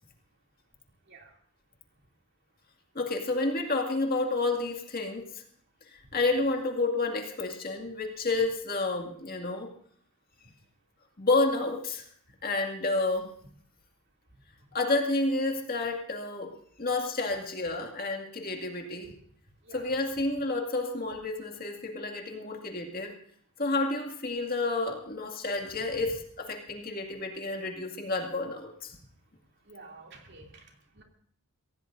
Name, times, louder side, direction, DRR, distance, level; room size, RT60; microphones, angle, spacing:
voice 1, 2.9-5.4 5.9-9.7 11.2-12.1 12.4-13.3 14.7-16.5 16.8-19.1 19.7-23.1 23.6-29.0, left 2 dB, 40° left, 2 dB, 2.2 m, -30 dB
voice 2, 29.7-31.0, right 2 dB, 50° right, 1 dB, 2.8 m, -51 dB
24.5 x 16.5 x 2.6 m, 0.62 s
head